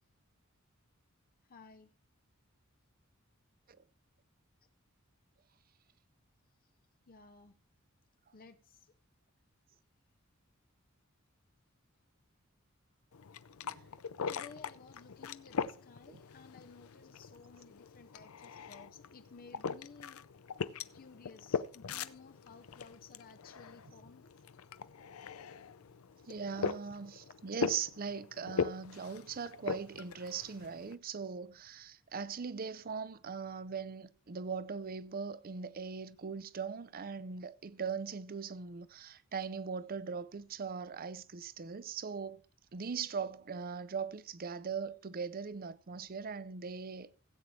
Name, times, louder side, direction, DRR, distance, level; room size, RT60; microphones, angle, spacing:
voice 1, 1.5-1.9 7.1-7.5 8.3-8.9 14.3-20.2 20.9-24.3 26.6-27.3, left 4 dB, 45° left, 0.7 m, -56 dB
sound 1, 13.1-30.9, left 6 dB, 85° left, 0.5 m, -41 dB
voice 2, 26.3-42.4 42.7-47.1, right 6 dB, 45° right, 0.6 m, -40 dB
16.5 x 8.4 x 3.2 m
head